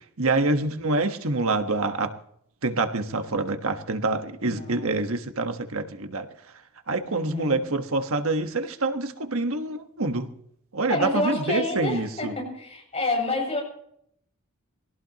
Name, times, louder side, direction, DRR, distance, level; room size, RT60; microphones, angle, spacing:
voice 1, 0.2-2.1 2.6-6.3 6.9-10.3 10.7-12.3, right 2 dB, 70° right, 7 dB, 1.4 m, -26 dB
voice 2, 4.4-4.9 7.1-7.6 10.9-13.6, left 2 dB, 30° left, 1 dB, 7.4 m, -28 dB
23.5 x 17.5 x 3.0 m, 0.72 s
head